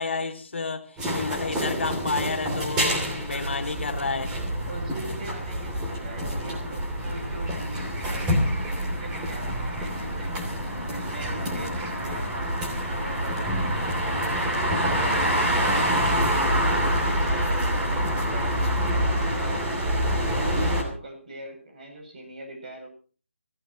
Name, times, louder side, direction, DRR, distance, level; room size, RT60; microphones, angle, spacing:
voice 1, 0.0-4.3, left 4 dB, 60° left, 2.6 m, -30 dB
sound 1, 1.0-20.8, equal, 10° right, 2.8 m, -26 dB
voice 2, 4.7-8.3 8.8-13.7 14.0-15.1 15.5-19.9 20.3-22.9, right 1 dB, 40° right, 7.5 m, -42 dB
26.0 x 15.0 x 3.1 m
figure-of-eight pair, 160°, 7 cm